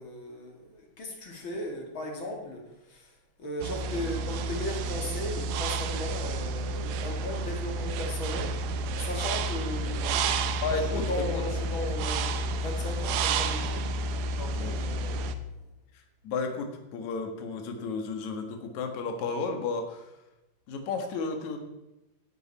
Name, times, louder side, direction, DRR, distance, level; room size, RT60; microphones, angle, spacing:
voice 1, 0.0-3.1 3.4-10.6 10.9-13.9 14.3-15.5, left 1 dB, 35° left, 1 dB, 2.6 m, -37 dB
sound 1, 3.6-15.3, right 3 dB, 75° right, 2.5 m, -30 dB
voice 2, 10.6-11.4 14.5-15.0 16.2-20.1 20.7-21.6, left 4 dB, 55° left, 4 dB, 2.6 m, -33 dB
15.5 x 12.0 x 4.3 m, 0.96 s
omnidirectional pair, 4.6 m